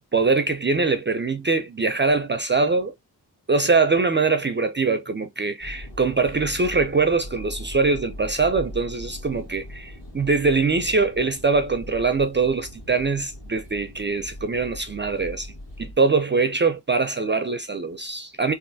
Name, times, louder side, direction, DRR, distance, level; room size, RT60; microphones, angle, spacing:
voice 1, 0.1-2.9 3.5-15.5 15.8-18.5, right 4 dB, 30° right, 0.4 m, -23 dB
sound 1, 5.6-15.9, left 1 dB, 55° left, 1.9 m, -40 dB
3.2 x 2.5 x 2.6 m
cardioid pair, 60°, 42 cm